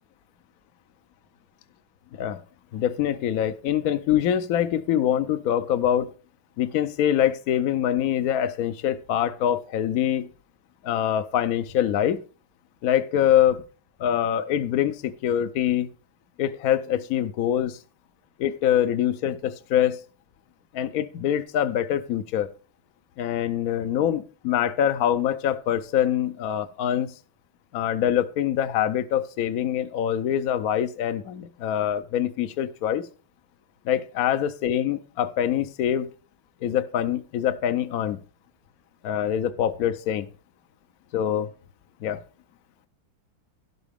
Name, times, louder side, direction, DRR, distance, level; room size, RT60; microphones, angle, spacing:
voice 1, 2.7-6.1 6.6-10.3 10.8-12.2 12.8-13.6 14.0-15.9 16.4-17.8 18.4-20.0 20.7-22.5 23.2-27.1 27.7-33.1 33.8-36.1 36.6-38.2 39.0-40.3 41.1-41.5 42.0-42.2, left 10 dB, 70° left, 0.9 m, -24 dB
12.0 x 11.5 x 3.5 m
omnidirectional pair, 2.2 m